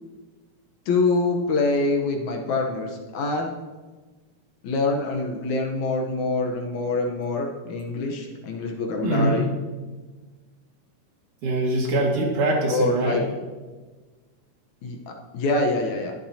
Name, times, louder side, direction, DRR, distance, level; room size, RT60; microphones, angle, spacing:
voice 1, 0.9-3.5 4.6-9.5 12.7-13.2 14.8-15.0 15.3-16.1, left 3 dB, 70° left, 2 dB, 2.2 m, -25 dB
voice 2, 9.0-9.4 11.4-13.2, right 2 dB, 70° right, -2 dB, 3.4 m, -23 dB
21.0 x 7.3 x 2.8 m, 1.3 s
omnidirectional pair, 3.7 m